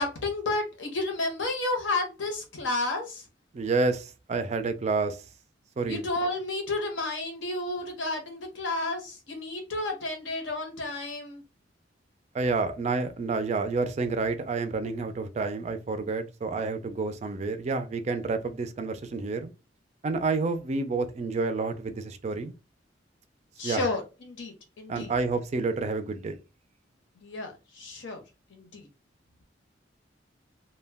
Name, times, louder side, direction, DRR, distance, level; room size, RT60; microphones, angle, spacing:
voice 1, 0.0-3.3 5.9-11.4 23.6-25.1 27.2-28.2 28.5-28.9, left 2 dB, 80° left, 0.8 m, -31 dB
voice 2, 3.5-5.2 5.8-6.0 12.3-19.5 20.0-22.5 23.6-23.8 24.9-26.4, right 3 dB, 35° right, 0.3 m, -29 dB
2.1 x 2.1 x 3.3 m
head